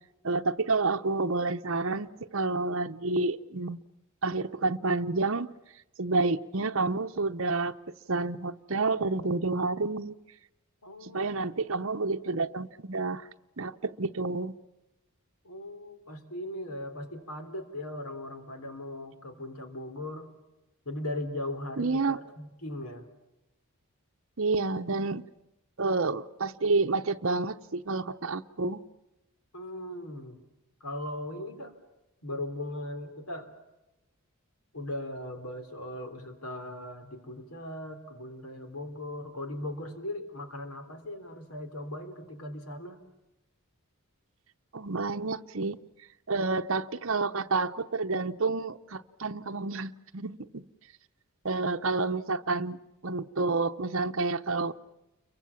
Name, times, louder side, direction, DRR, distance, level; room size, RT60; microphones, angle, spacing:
voice 1, 0.2-3.8 4.2-5.5 6.0-7.7 8.1-10.2 11.0-13.3 13.6-14.6 21.8-22.2 24.4-25.2 25.8-28.8 44.7-45.8 46.3-50.7 51.4-52.8 53.0-54.7, right 3 dB, 60° right, 7 dB, 0.9 m, -29 dB
voice 2, 10.8-11.5 15.4-20.3 20.9-23.1 29.5-30.4 30.8-31.7 32.2-33.5 34.7-43.0, left 1 dB, 80° left, 8 dB, 3.6 m, -38 dB
29.5 x 23.5 x 7.2 m, 0.98 s
head